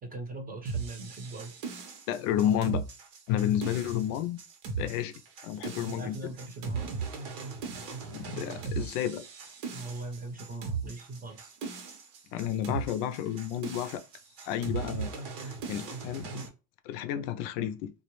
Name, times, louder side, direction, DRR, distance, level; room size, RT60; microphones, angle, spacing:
voice 1, 0.0-1.5 5.8-6.9 9.7-11.5, right 2 dB, 20° right, 0.7 m, -40 dB
sound 1, 0.6-16.5, right 5 dB, 70° right, 0.9 m, -38 dB
voice 2, 2.1-2.9 3.3-4.4 4.8-5.1 5.4-6.2 8.1-9.2 12.3-14.0 14.4-16.5 16.9-17.9, left 10 dB, 80° left, 0.5 m, -31 dB
2.3 x 2.0 x 2.9 m
cardioid pair, 130°, 45 cm